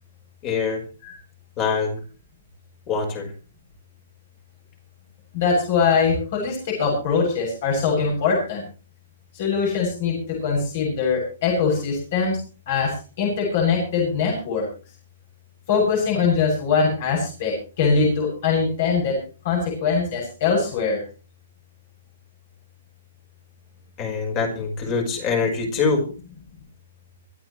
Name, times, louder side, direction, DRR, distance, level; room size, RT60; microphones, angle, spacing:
voice 1, 0.4-0.8 1.6-2.0 2.9-3.3 24.0-26.0, left 5 dB, 25° left, 3 dB, 5.0 m, -24 dB
voice 2, 5.3-8.6 9.3-12.4 12.7-14.7 15.7-19.2 19.4-21.0, left 5 dB, 45° left, -1 dB, 7.9 m, -22 dB
25.0 x 12.0 x 3.3 m, 0.36 s
hypercardioid pair, 170°, 0 cm